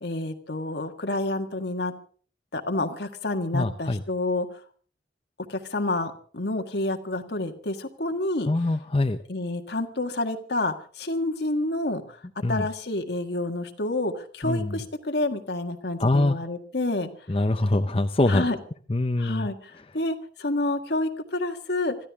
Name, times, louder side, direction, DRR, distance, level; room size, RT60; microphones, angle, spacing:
voice 1, 0.0-1.9 2.5-4.5 5.5-8.5 9.3-12.2 12.5-17.1 18.3-18.6 19.2-22.0, left 2 dB, 65° left, 5 dB, 1.6 m, -29 dB
voice 2, 3.5-4.0 8.5-9.2 12.4-12.6 14.4-14.7 16.0-16.4 17.3-18.5 18.9-19.5, left 2 dB, 30° left, 7 dB, 0.6 m, -23 dB
25.5 x 14.0 x 3.6 m, 0.43 s
head